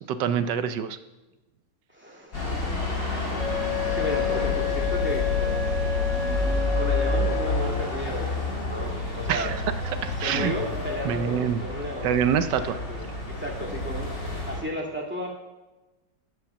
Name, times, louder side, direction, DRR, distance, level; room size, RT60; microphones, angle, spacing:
voice 1, 0.1-1.0 9.3-9.6 10.0-10.5 11.0-11.6 12.0-12.8, right 8 dB, 75° right, 12 dB, 1.3 m, -25 dB
voice 2, 1.9-2.4 3.1-3.5 3.8-5.8 6.8-9.5 10.2-12.2 12.5-14.1 14.5-15.3, equal, 5° right, -2 dB, 2.1 m, -34 dB
sound 1, 2.3-14.6, left 2 dB, 50° left, 3.7 m, -29 dB
Wind instrument woodwind instrument, 3.4-8.0, left 7 dB, 75° left, 2.3 m, -30 dB
13.0 x 5.9 x 7.0 m, 1.1 s
omnidirectional pair, 2.0 m